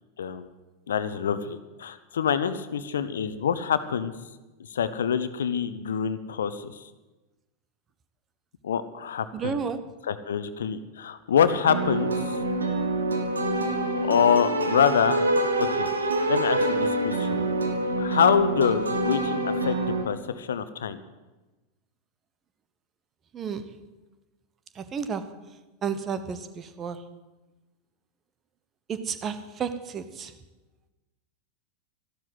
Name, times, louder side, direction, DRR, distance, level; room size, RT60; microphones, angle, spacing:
voice 1, 0.2-0.5 0.9-4.1 4.7-6.9 8.6-9.6 10.0-12.4 14.0-15.2 15.6-17.5 18.0-21.0, left 7 dB, 65° left, 13 dB, 0.9 m, -26 dB
voice 2, 9.3-9.9 23.3-23.7 24.8-25.3 25.8-27.1 28.9-30.3, right 6 dB, 25° right, 12 dB, 1.1 m, -32 dB
sound 1, 11.6-20.0, right 2 dB, 75° right, 2.0 m, -26 dB
13.5 x 12.0 x 7.9 m, 1.1 s
figure-of-eight pair, 90°, 0 cm